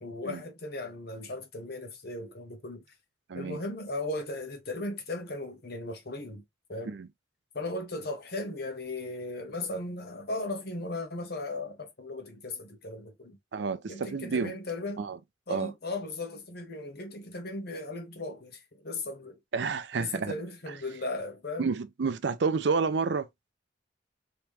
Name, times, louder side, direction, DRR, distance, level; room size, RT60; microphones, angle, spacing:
voice 1, 0.0-2.8 3.3-6.4 6.7-6.9 7.5-13.4 13.9-15.1 15.5-19.3 19.9-21.7, left 2 dB, 55° left, 1.0 m, -37 dB
voice 2, 13.5-14.6 15.0-15.2 15.5-15.7 19.5-20.4 20.7-20.8 21.6-23.3, right 5 dB, 60° right, 0.5 m, -30 dB
3.6 x 3.0 x 3.0 m
head